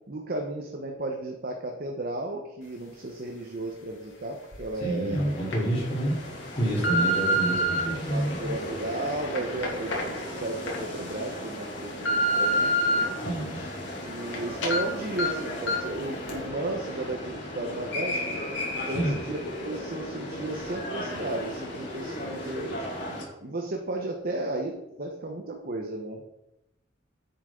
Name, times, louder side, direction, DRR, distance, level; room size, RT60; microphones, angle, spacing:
voice 1, 0.1-5.3 5.8-5.9 6.9-7.1 7.9-13.2 14.0-18.4 18.9-22.9 23.4-26.2, right 2 dB, 50° right, 2 dB, 1.1 m, -34 dB
sound 1, 4.5-4.6 5.2-5.6 6.2-7.8 8.5-10.8 11.2-11.3 11.7-13.0 13.5-14.4 14.6-14.8 15.2-15.3 15.7-15.9 16.3-16.4, equal, 85° left, 2.5 m, -27 dB
voice 2, 4.8-6.2 6.5-8.5 13.2-13.6 18.9-19.2, right 1 dB, 30° left, -6 dB, 3.8 m, -28 dB
sound 2, 5.1-23.2, left 1 dB, 65° left, 3.2 m, -36 dB
9.9 x 8.3 x 3.9 m, 0.89 s
head